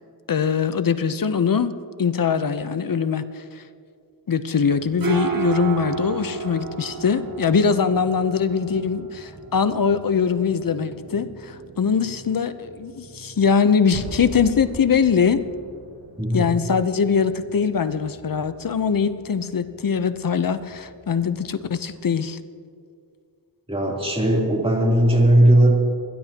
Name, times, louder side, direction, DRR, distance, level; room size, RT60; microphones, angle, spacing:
voice 1, 0.3-1.7 2.0-3.3 3.6-3.7 4.3-15.4 16.3-22.4, left 6 dB, 50° left, 12 dB, 0.8 m, -22 dB
sound 1, 4.6-22.0, right 6 dB, 50° right, 1.6 m, -35 dB
sound 2, 13.8-16.8 17.1-17.2, right 1 dB, 85° right, 3.4 m, -38 dB
voice 2, 16.2-16.6 23.7-25.7, right 1 dB, 15° right, -2 dB, 3.1 m, -17 dB
29.5 x 11.5 x 2.9 m, 2.3 s
cardioid pair, 60°, 44 cm